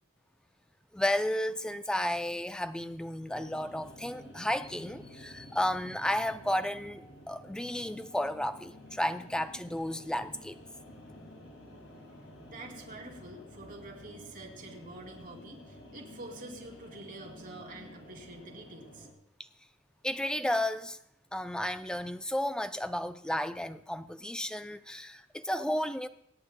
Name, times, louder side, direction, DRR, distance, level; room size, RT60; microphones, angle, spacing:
voice 1, 0.9-10.6 20.0-21.0 21.3-26.1, left 1 dB, 5° left, 10 dB, 0.4 m, -33 dB
sound 1, 3.3-19.1, left 1 dB, 60° left, 2.2 m, -51 dB
voice 2, 12.5-19.1, right 2 dB, 40° right, -1 dB, 2.7 m, -47 dB
26.0 x 9.6 x 2.2 m, 0.71 s
head